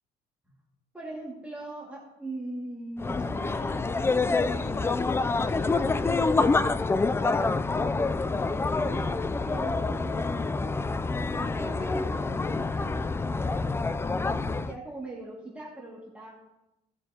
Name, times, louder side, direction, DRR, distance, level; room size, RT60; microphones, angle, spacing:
voice 1, 0.9-4.9 5.3-6.3 7.2-10.5 11.2-13.9 14.6-16.3, right 2 dB, 10° right, -5 dB, 2.2 m, -41 dB
sound 1, 3.0-14.8, left 3 dB, 15° left, 0.3 m, -27 dB
17.5 x 6.9 x 2.9 m, 0.93 s
cardioid pair, 110°, 17 cm